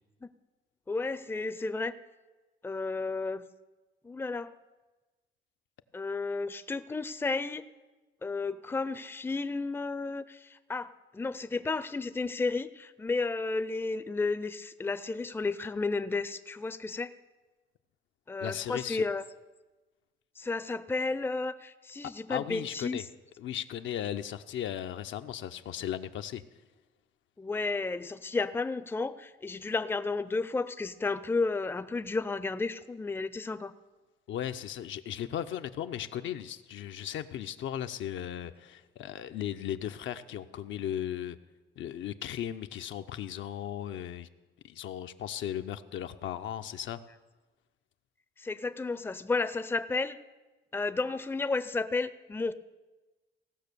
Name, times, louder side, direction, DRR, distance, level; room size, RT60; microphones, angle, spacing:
voice 1, 0.9-1.9 2.6-3.4 4.0-4.5 5.9-7.6 8.2-17.1 18.3-19.2 20.4-23.0 27.4-33.7 48.4-50.2 50.7-52.5, left 3 dB, 10° left, 13 dB, 0.5 m, -32 dB
voice 2, 18.4-19.1 22.0-23.0 23.4-26.4 34.3-41.4 41.8-44.3 44.6-47.0, left 10 dB, 75° left, 9 dB, 0.6 m, -36 dB
16.5 x 6.1 x 6.8 m, 1.2 s
cardioid pair, 90°, 20 cm